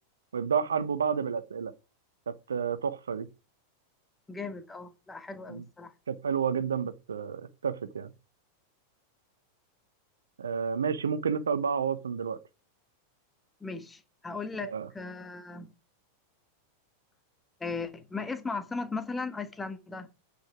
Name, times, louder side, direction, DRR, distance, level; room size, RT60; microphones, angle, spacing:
voice 1, 0.3-1.7 2.3-3.3 5.5-5.6 6.1-8.1 10.4-12.4 14.6-14.9, right 6 dB, 70° right, 0.8 m, -30 dB
voice 2, 4.3-5.9 13.6-15.7 17.6-20.1, left 4 dB, 10° left, 1.4 m, -37 dB
9.1 x 5.6 x 6.0 m
figure-of-eight pair, 90°, 0 cm